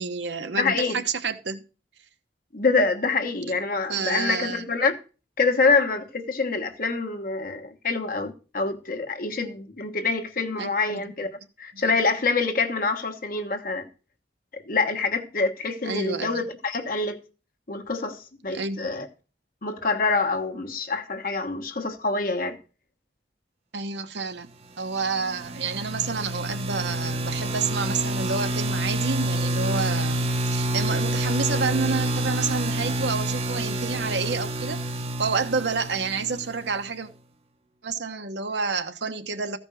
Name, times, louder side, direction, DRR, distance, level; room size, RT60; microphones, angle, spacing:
voice 1, 0.0-1.6 3.9-4.6 10.6-11.0 11.7-11.8 15.8-16.4 18.5-18.8 23.7-24.5 24.8-34.8 35.2-37.1 37.8-39.6, right 4 dB, 75° right, 1.1 m, -29 dB
voice 2, 0.6-1.0 2.5-4.9 5.4-11.3 11.6-13.9 14.7-17.2 17.7-19.1 19.6-22.6, left 4 dB, 50° left, 1.3 m, -26 dB
sound 1, 25.0-36.8, right 1 dB, 35° right, 0.8 m, -28 dB
14.5 x 5.3 x 6.3 m
head